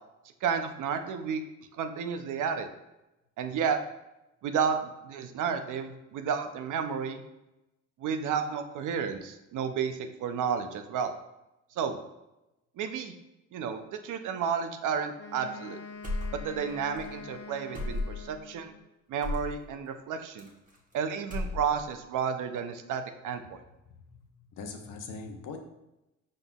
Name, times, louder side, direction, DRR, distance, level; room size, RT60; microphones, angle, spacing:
voice 1, 0.4-1.4 1.7-2.7 3.4-3.8 4.4-7.2 8.0-11.1 11.8-12.0 12.8-13.1 13.5-15.8 16.3-18.7 19.1-20.5 20.9-23.6, right 7 dB, 65° right, 8 dB, 0.6 m, -31 dB
Wind instrument woodwind instrument, 15.2-18.9, left 4 dB, 35° left, 0.6 m, -45 dB
sound 1, 16.0-16.7 17.0-17.1 17.7-18.4 19.2-19.6 20.4-20.9 21.2-21.9, left 2 dB, 25° right, 1.1 m, -34 dB
voice 2, 23.9-25.6, left 4 dB, 70° left, 5 dB, 0.8 m, -42 dB
5.3 x 3.8 x 2.3 m, 0.94 s
cardioid pair, 80°, 33 cm